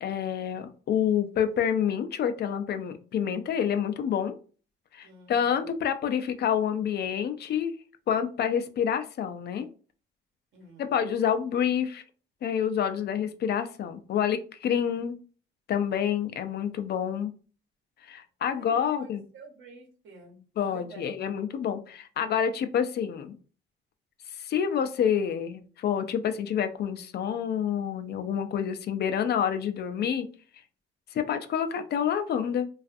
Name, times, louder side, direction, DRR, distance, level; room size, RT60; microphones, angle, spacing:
voice 1, 0.0-4.4 4.9-7.7 8.1-9.7 10.8-12.0 12.4-15.2 15.7-17.3 18.0-19.2 20.6-23.4 24.3-30.3 31.1-32.7, left 8 dB, 55° left, 9 dB, 0.4 m, -28 dB
voice 2, 5.0-5.6 10.5-10.9 18.4-21.1, right 4 dB, 75° right, 1 dB, 0.9 m, -50 dB
2.4 x 2.4 x 2.5 m, 0.39 s
cardioid pair, 90°, 20 cm